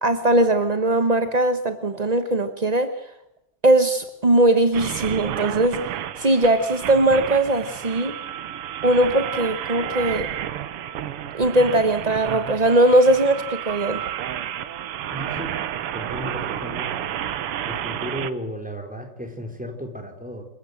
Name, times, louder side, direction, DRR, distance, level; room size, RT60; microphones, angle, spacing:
voice 1, 0.0-2.9 3.6-5.8 6.2-8.1 8.8-10.3 11.3-14.0, right 1 dB, 35° right, 9 dB, 0.6 m, -19 dB
sound 1, 4.7-18.3, right 10 dB, 90° right, 2.0 m, -31 dB
voice 2, 15.1-15.6 15.9-16.9 17.6-20.4, equal, 5° right, 4 dB, 3.8 m, -34 dB
27.5 x 15.0 x 7.9 m, 0.83 s
omnidirectional pair, 2.4 m